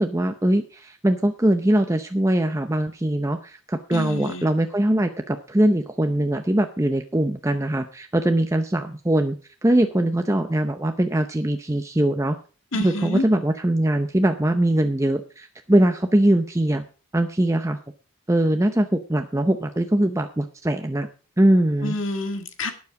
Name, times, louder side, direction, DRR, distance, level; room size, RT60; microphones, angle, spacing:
voice 1, 0.0-9.4 9.6-12.4 12.8-16.8 17.1-17.8 18.3-21.1 21.4-22.0, right 1 dB, 15° right, 6 dB, 0.6 m, -21 dB
voice 2, 3.9-4.5 12.7-13.2 21.8-22.7, left 2 dB, 60° left, 7 dB, 2.0 m, -28 dB
12.0 x 9.5 x 4.8 m, 0.36 s
head